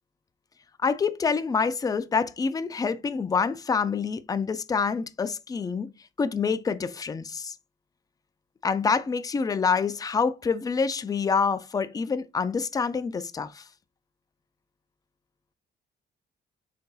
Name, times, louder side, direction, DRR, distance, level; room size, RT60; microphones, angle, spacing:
voice 1, 0.8-5.9 6.2-7.5 8.6-13.7, left 5 dB, 20° left, 0.3 m, -26 dB
4.1 x 3.6 x 2.2 m
cardioid pair, 90°, 20 cm